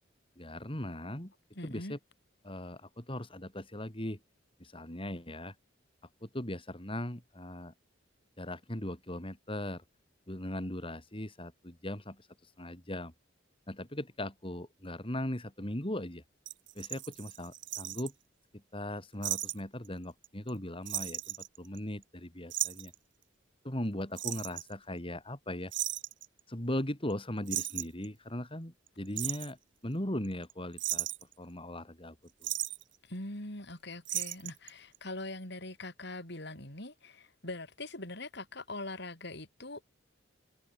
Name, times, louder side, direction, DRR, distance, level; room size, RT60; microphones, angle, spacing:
voice 1, 0.4-1.3 1.6-2.0 2.4-4.2 4.6-5.5 6.2-7.7 8.4-9.8 10.3-13.1 13.7-16.2 16.8-18.1 18.5-22.9 23.6-25.7 26.5-29.6 29.8-31.1 31.4-32.2 32.4-32.5, left 1 dB, 30° left, 5.4 m, -39 dB
voice 2, 1.6-2.0 33.0-39.8, left 2 dB, 65° left, 7.5 m, -42 dB
sound 1, 16.5-18.1 19.2-19.6 19.8-19.9 20.2-20.6 20.9-22.0 22.5-22.9 24.2-24.7 25.7-26.3 27.1-27.2 27.5-28.1 28.9-29.5 30.2-30.5 30.8-31.3 32.4-32.8 34.1-34.7 34.9-35.0, right 14 dB, 70° right, 5.2 m, -35 dB
head